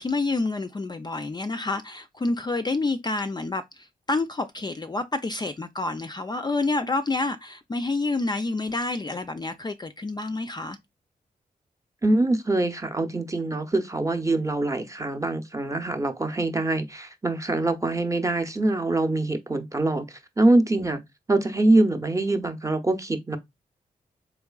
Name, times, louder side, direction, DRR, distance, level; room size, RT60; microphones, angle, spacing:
voice 1, 0.0-10.8, left 3 dB, 25° left, 0.4 m, -28 dB
voice 2, 12.0-21.0 21.3-23.4, right 2 dB, 20° right, 0.7 m, -24 dB
3.6 x 3.1 x 2.3 m
cardioid pair, 50°, 17 cm